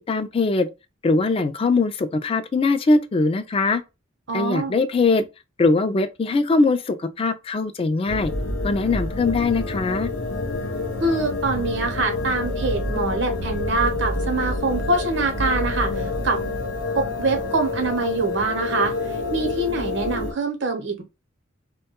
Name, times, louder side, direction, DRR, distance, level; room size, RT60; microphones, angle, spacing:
voice 1, 0.1-0.7 1.0-3.8 4.3-5.3 5.6-8.3 8.6-10.1, left 3 dB, 30° left, 0.3 m, -21 dB
voice 2, 4.3-4.8 11.0-16.4 16.9-18.9 19.3-21.0, right 3 dB, 65° right, 0.8 m, -24 dB
sound 1, 8.1-20.3, left 2 dB, 90° left, 0.7 m, -27 dB
2.2 x 2.2 x 2.8 m
head